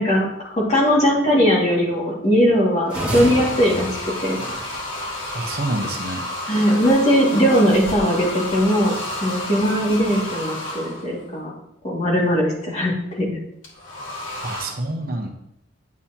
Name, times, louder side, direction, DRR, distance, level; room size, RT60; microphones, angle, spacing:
voice 1, 0.0-3.9 4.2-4.4 6.5-8.9 9.2-11.5 11.8-13.4, equal, 35° left, -4 dB, 2.3 m, -19 dB
sound 1, 2.9-11.2 13.6-14.7, left 1 dB, 90° left, 2.3 m, -31 dB
sound 2, 2.9-5.1, right 1 dB, 5° right, 2.6 m, -30 dB
voice 2, 5.3-6.8 14.4-15.3, right 2 dB, 50° right, 3 dB, 1.0 m, -28 dB
9.1 x 8.4 x 2.9 m, 0.79 s
head